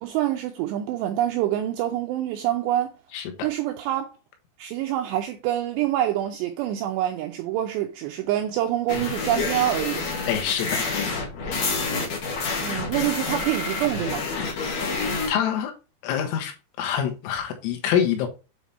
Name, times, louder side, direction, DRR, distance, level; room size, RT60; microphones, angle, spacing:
voice 1, 0.0-2.9 3.4-4.1 4.6-10.1 12.6-14.3, right 13 dB, 85° right, 2.5 m, -26 dB
voice 2, 3.1-3.5 10.3-11.1 14.4-14.6 15.3-15.7 16.0-18.3, left 9 dB, 90° left, 3.9 m, -26 dB
sound 1, 8.9-15.3, left 4 dB, 55° left, 2.2 m, -28 dB
8.8 x 3.6 x 4.2 m
omnidirectional pair, 5.6 m